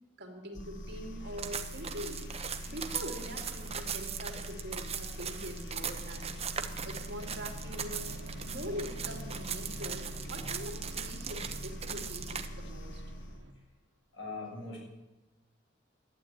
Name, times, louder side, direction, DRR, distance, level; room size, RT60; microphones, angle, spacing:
voice 1, 0.2-2.3 2.6-6.4 6.8-13.0, equal, 60° right, 0 dB, 2.9 m, -43 dB
sound 1, 0.5-13.5, equal, 65° left, 1.3 m, -43 dB
sound 2, 0.8-13.5, right 1 dB, 75° right, 1.5 m, -51 dB
sound 3, 1.4-12.5, right 7 dB, 35° right, 0.9 m, -39 dB
voice 2, 14.1-14.8, left 3 dB, 85° left, -2 dB, 6.6 m, -40 dB
12.0 x 10.0 x 9.0 m, 1.0 s
head